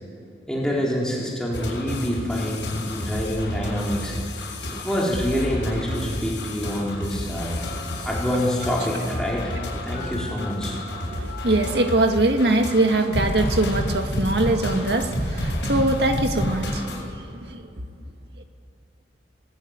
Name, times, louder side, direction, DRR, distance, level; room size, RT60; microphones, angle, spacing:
voice 1, 0.5-4.1 4.8-7.6 8.0-9.5 9.8-10.8, equal, 5° left, -5 dB, 4.1 m, -26 dB
sound 1, 1.5-17.0, left 1 dB, 70° left, 6.9 m, -30 dB
Telephone, 7.6-14.5, left 5 dB, 45° left, 3.0 m, -41 dB
voice 2, 11.1-17.6, right 2 dB, 65° right, 5 dB, 1.9 m, -22 dB
27.5 x 18.5 x 9.0 m, 2.8 s
head